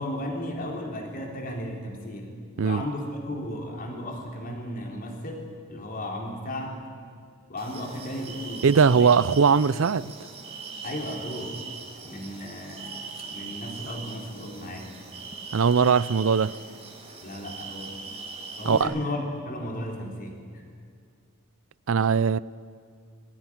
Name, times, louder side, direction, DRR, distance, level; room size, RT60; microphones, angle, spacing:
voice 1, 0.0-6.9 7.5-9.1 9.7-9.9 10.8-11.6 12.0-14.9 17.2-18.0 18.6-20.6, left 1 dB, 40° left, 3.6 m, -35 dB
sound 1, 7.6-18.8, right 4 dB, 25° right, 2.6 m, -41 dB
voice 2, 8.6-10.1 15.5-16.5 18.6-18.9 21.9-22.4, right 6 dB, 65° right, 0.4 m, -20 dB
20.5 x 15.5 x 9.9 m
head